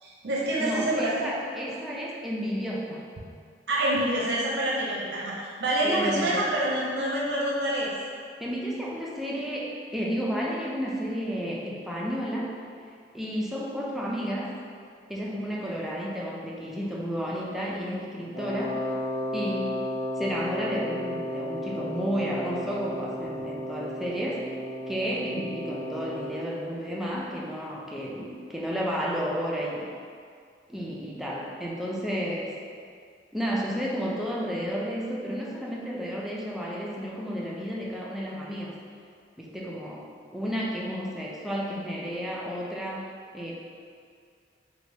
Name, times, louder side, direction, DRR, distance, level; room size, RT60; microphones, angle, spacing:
voice 1, 0.0-1.3 3.7-7.9, right 1 dB, 65° right, -5 dB, 0.6 m, -27 dB
voice 2, 0.6-3.1 5.8-6.5 8.4-12.5 13.1-14.6 15.1-18.9 19.3-19.7 20.2-24.6 24.9-29.9 30.7-32.6 33.3-38.8 39.4-43.1 43.3-43.5, equal, ahead, -4 dB, 0.4 m, -32 dB
Wind instrument woodwind instrument, 18.3-26.4, equal, 80° left, 1.4 m, -33 dB
3.4 x 2.9 x 2.7 m, 2.2 s
head